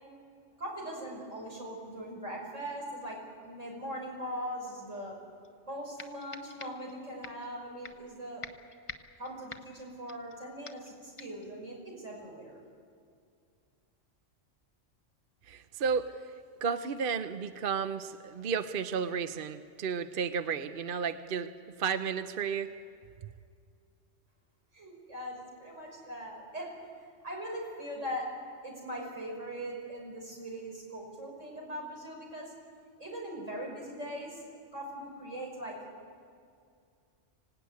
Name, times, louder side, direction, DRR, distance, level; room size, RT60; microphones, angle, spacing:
voice 1, 0.6-5.2 5.7-8.4 9.2-12.6 24.7-28.3 28.6-32.5 33.0-34.4 34.7-35.8, equal, 85° right, -1 dB, 6.1 m, -40 dB
sound 1, 5.4-5.5 6.0-6.9 7.2-7.5 7.8-8.1 8.4-10.4 10.7-10.9 11.2-11.5, left 3 dB, 30° left, 0.9 m, -46 dB
voice 2, 15.5-16.1 16.6-21.5 21.8-22.7, right 6 dB, 50° right, 10 dB, 0.9 m, -32 dB
25.5 x 17.0 x 9.5 m, 2.3 s
omnidirectional pair, 1.3 m